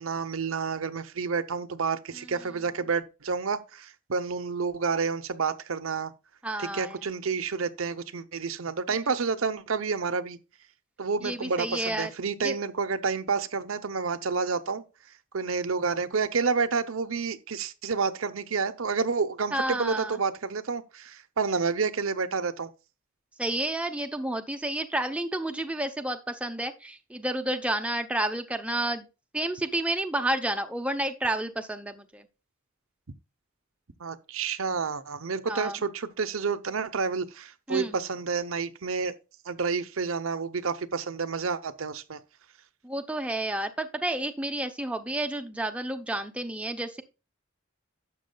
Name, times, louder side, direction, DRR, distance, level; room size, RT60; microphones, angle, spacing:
voice 1, 0.0-6.1 6.6-10.4 11.0-14.8 15.3-22.7 34.0-39.1 39.4-42.2, right 5 dB, 80° right, 0.8 m, -29 dB
voice 2, 6.4-6.9 11.2-12.1 12.4-12.5 19.5-20.2 23.4-29.1 29.3-32.2 35.5-35.8 37.7-37.9 42.8-47.0, right 1 dB, 5° right, 0.6 m, -30 dB
12.0 x 7.4 x 2.3 m
head